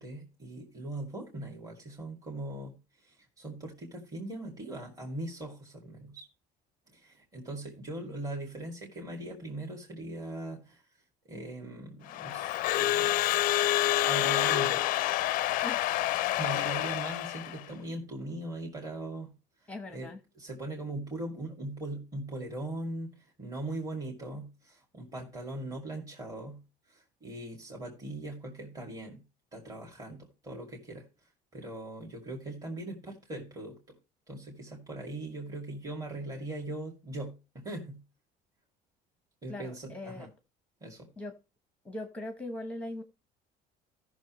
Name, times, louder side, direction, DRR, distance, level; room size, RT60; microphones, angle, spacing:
voice 1, 0.0-2.8 3.0-6.3 6.9-10.8 11.3-13.1 14.0-14.9 16.4-19.3 19.9-26.6 26.9-29.2 29.5-31.1 31.5-34.0 34.3-38.0 39.4-40.3 40.8-41.1, right 2 dB, 20° right, -1 dB, 2.3 m, -40 dB
Crowd / Alarm, 12.1-17.6, left 15 dB, 50° left, 0.5 m, -28 dB
voice 2, 19.7-20.2 39.5-40.3 41.2-41.3 41.8-43.0, left 2 dB, 10° left, 7 dB, 0.9 m, -40 dB
16.5 x 6.3 x 3.1 m, 0.29 s
cardioid pair, 160°, 18 cm